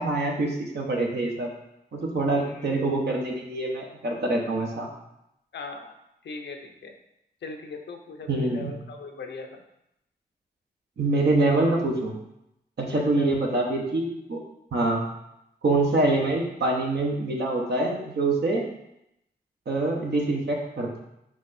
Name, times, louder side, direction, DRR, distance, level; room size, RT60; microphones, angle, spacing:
voice 1, 0.0-1.5 1.9-4.9 8.3-8.7 11.0-12.2 12.8-14.4 14.7-15.0 15.6-18.6 19.7-21.0, right 2 dB, 75° right, -1 dB, 1.3 m, -25 dB
voice 2, 2.3-2.6 5.5-5.9 6.2-6.9 7.4-9.6 12.9-13.4, left 3 dB, 90° left, 4 dB, 0.8 m, -39 dB
5.0 x 4.6 x 4.3 m, 0.82 s
cardioid pair, 70°, 18 cm